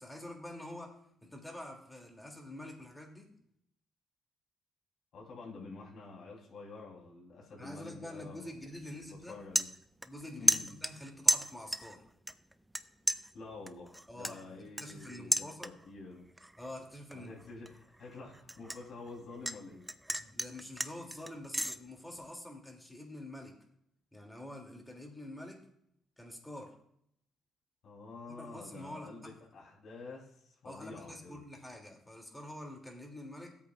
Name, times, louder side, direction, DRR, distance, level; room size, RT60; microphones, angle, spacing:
voice 1, 0.0-3.3 7.6-9.4 10.0-12.1 14.1-15.7 16.6-17.4 20.1-23.6 24.1-25.6 26.2-26.8 28.3-29.3 30.6-33.5, left 1 dB, 10° left, 2 dB, 2.6 m, -47 dB
voice 2, 5.1-8.5 9.1-9.7 10.4-10.7 13.3-16.3 17.1-19.8 27.8-31.4, left 3 dB, 65° left, -3 dB, 3.4 m, -48 dB
sound 1, 8.6-8.8 9.2-10.2 10.5-12.0 12.3-12.8 13.1-16.0 16.4-16.7 17.1-19.6 19.9-21.8, right 1 dB, 5° right, 0.6 m, -33 dB
16.5 x 8.4 x 2.4 m, 0.70 s
cardioid pair, 90°, 0 cm